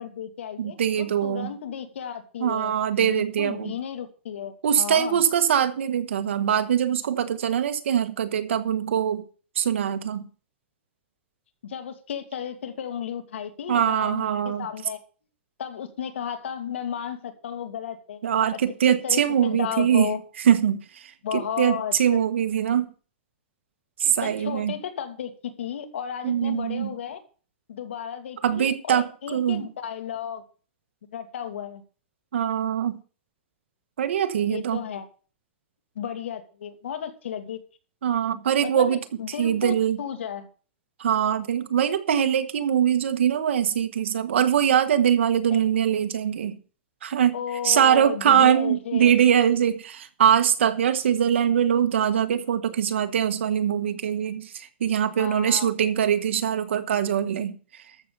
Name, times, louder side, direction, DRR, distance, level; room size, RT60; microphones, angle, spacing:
voice 1, 0.0-2.7 3.0-5.2 11.6-15.0 15.6-18.2 18.5-18.6 19.0-20.2 21.2-21.9 24.0-27.2 27.7-30.4 31.1-31.8 34.5-35.0 36.0-37.6 38.6-40.5 45.5-45.6 47.3-49.1 55.2-55.7, left 8 dB, 85° left, 2.4 m, -34 dB
voice 2, 0.6-1.5 2.4-3.7 4.6-9.2 9.5-10.3 13.7-14.7 18.2-20.1 20.5-22.9 24.0-24.7 26.2-26.9 28.4-29.7 32.3-33.0 34.0-34.8 38.0-39.0 39.4-40.0 41.0-46.6 47.0-47.4 47.6-57.8, right 9 dB, 80° right, 1.6 m, -23 dB
13.5 x 5.5 x 6.9 m
hypercardioid pair, 150°, 6 cm